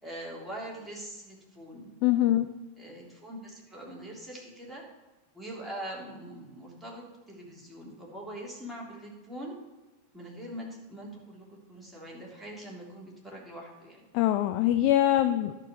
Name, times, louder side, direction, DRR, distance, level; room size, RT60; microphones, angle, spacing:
voice 1, 0.0-1.9 2.8-4.8 5.3-9.5 10.1-14.0, right 1 dB, ahead, -4 dB, 3.1 m, -43 dB
voice 2, 2.0-2.5 14.1-15.5, left 13 dB, 45° left, 9 dB, 0.4 m, -23 dB
11.5 x 4.9 x 6.9 m, 1.1 s
figure-of-eight pair, 90°, 0 cm